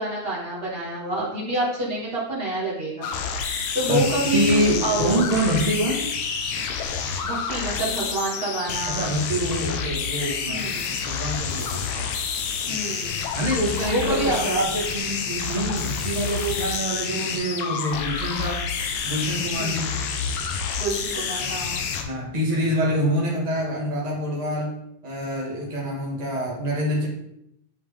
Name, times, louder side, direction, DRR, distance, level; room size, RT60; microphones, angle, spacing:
voice 1, 0.0-3.1 3.7-5.1 7.2-9.1 10.5-10.9 12.7-13.2 13.9-14.5 19.5-19.8 20.8-21.8, right 1 dB, 45° right, -6 dB, 0.7 m, -27 dB
sound 1, 3.0-22.0, left 6 dB, 75° left, 2.0 m, -28 dB
voice 2, 4.3-6.1 8.9-12.1 13.3-18.6 19.0-19.9 22.0-24.7 25.0-27.1, right 1 dB, 80° right, -5 dB, 0.3 m, -26 dB
10.5 x 3.6 x 3.3 m, 0.81 s
omnidirectional pair, 3.5 m